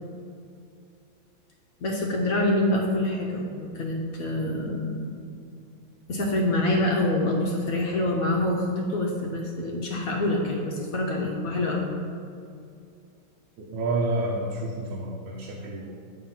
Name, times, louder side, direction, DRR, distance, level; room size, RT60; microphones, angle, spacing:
voice 1, 1.8-5.2 6.1-11.8, left 1 dB, 70° left, 0 dB, 0.8 m, -26 dB
voice 2, 13.6-15.9, right 2 dB, 90° right, -1 dB, 1.5 m, -29 dB
7.2 x 3.6 x 5.4 m, 2.4 s
omnidirectional pair, 2.1 m